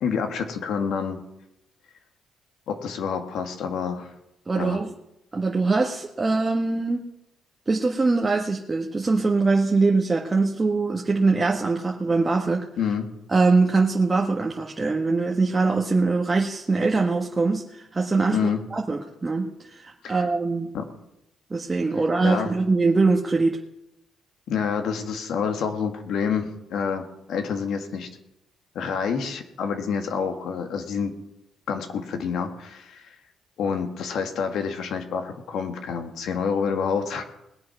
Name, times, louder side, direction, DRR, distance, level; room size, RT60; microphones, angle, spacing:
voice 1, 0.0-1.2 2.7-4.1 4.6-4.8 12.8-13.1 18.3-18.6 20.0-20.3 20.7-20.9 21.9-22.5 24.5-28.1 28.8-31.1 31.7-33.2 33.6-37.2, left 6 dB, 75° left, 6 dB, 1.7 m, -28 dB
voice 2, 4.5-4.9 5.3-7.1 7.7-12.6 13.3-18.4 18.7-20.7 21.5-23.6, right 3 dB, 25° right, 0 dB, 1.3 m, -22 dB
20.5 x 7.6 x 6.0 m, 0.86 s
cardioid pair, 90°, 0 cm